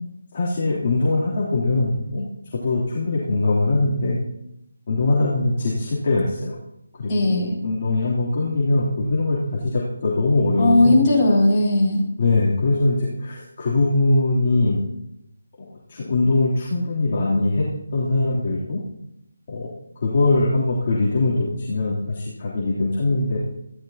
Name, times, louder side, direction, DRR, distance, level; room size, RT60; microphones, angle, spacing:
voice 1, 0.3-2.2 2.5-4.2 4.9-6.6 7.0-11.0 12.2-14.8 15.7-17.7 17.9-18.8 19.5-19.7 20.0-23.4, left 2 dB, 35° left, -7 dB, 3.1 m, -22 dB
voice 2, 7.1-7.6 10.6-12.0, left 2 dB, 20° left, -7 dB, 6.0 m, -17 dB
15.0 x 13.5 x 2.9 m, 0.82 s
figure-of-eight pair, 170°, 0 cm